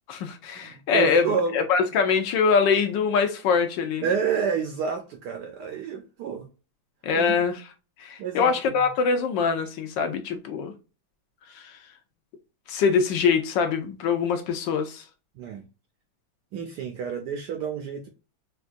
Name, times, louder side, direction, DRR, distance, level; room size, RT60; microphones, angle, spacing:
voice 1, 0.1-4.1 7.0-7.6 8.0-10.7 11.5-11.8 12.7-15.1, left 5 dB, 75° left, 1.2 m, -23 dB
voice 2, 0.6-1.6 4.0-6.5 7.1-7.4 8.2-8.5 15.4-15.6 16.5-18.1, right 6 dB, 75° right, 0.9 m, -29 dB
4.4 x 2.3 x 2.4 m
omnidirectional pair, 2.2 m